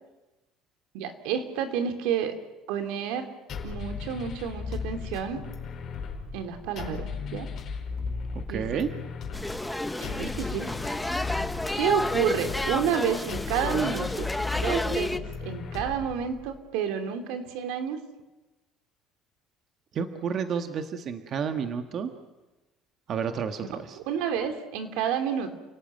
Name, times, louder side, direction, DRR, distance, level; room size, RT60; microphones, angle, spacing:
voice 1, 0.9-2.4 2.7-3.3 3.6-5.4 6.3-7.5 8.5-8.8 10.0-10.8 11.7-18.0 24.0-25.5, right 8 dB, 85° right, 6 dB, 3.0 m, -30 dB
sound 1, 3.5-16.5, left 5 dB, 40° left, 4.6 m, -36 dB
voice 2, 8.5-8.9 19.9-22.1 23.1-24.0, right 7 dB, 40° right, 6 dB, 1.6 m, -30 dB
sound 2, 9.3-15.2, left 1 dB, 5° left, 0.9 m, -31 dB
29.5 x 18.0 x 9.2 m, 1.1 s
cardioid pair, 150°, 0 cm